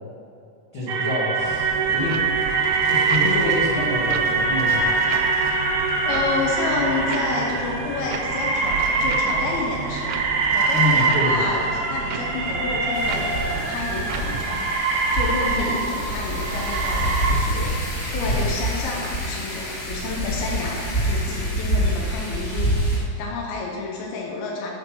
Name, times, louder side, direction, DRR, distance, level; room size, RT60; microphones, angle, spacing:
voice 1, 0.7-2.2 2.8-4.9 10.7-11.4 15.5-15.7 18.2-18.5, left 2 dB, 60° left, -9 dB, 0.9 m, -27 dB
sound 1, 0.9-17.3, right 4 dB, 60° right, 1.4 m, -24 dB
sound 2, 1.4-14.5, right 7 dB, 80° right, 2.3 m, -34 dB
voice 2, 6.0-14.7 15.1-17.0 17.3-24.7, left 4 dB, 85° left, -2 dB, 2.8 m, -30 dB
Wind, 12.9-23.0, right 1 dB, 40° left, 1.2 m, -26 dB
8.2 x 4.5 x 5.9 m, 2.5 s
omnidirectional pair, 4.3 m